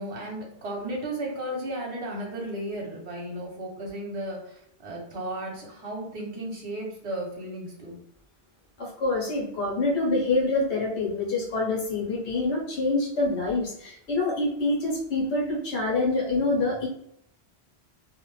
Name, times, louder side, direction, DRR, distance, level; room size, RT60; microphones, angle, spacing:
voice 1, 0.0-8.0, right 1 dB, 75° right, 1.0 m, -34 dB
voice 2, 8.8-16.9, left 2 dB, 85° left, 1.1 m, -26 dB
2.5 x 2.1 x 3.0 m
omnidirectional pair, 1.1 m